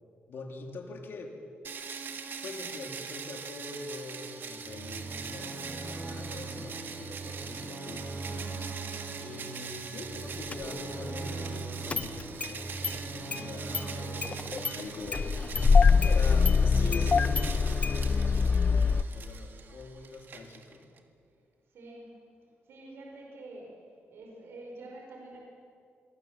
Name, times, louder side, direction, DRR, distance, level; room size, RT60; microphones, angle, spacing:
voice 1, 0.3-1.3 2.4-8.1 9.2-15.3 16.0-18.3 18.8-20.9, left 3 dB, 60° left, 2 dB, 3.6 m, -43 dB
sound 1, 1.6-21.0, right 6 dB, 55° right, 1.9 m, -42 dB
sound 2, 4.6-15.9, right 2 dB, 40° right, 6.2 m, -41 dB
Engine starting, 10.5-10.6 11.9-12.5 12.8-12.9 13.3-13.4 13.7-13.8 14.2-14.7 15.1-19.0, left 5 dB, 30° left, 0.7 m, -24 dB
voice 2, 21.7-22.1 22.7-23.8 24.1-25.4, right 2 dB, 75° right, -1 dB, 5.3 m, -46 dB
26.5 x 23.5 x 7.6 m, 2.4 s
wide cardioid pair, 145°, 4 cm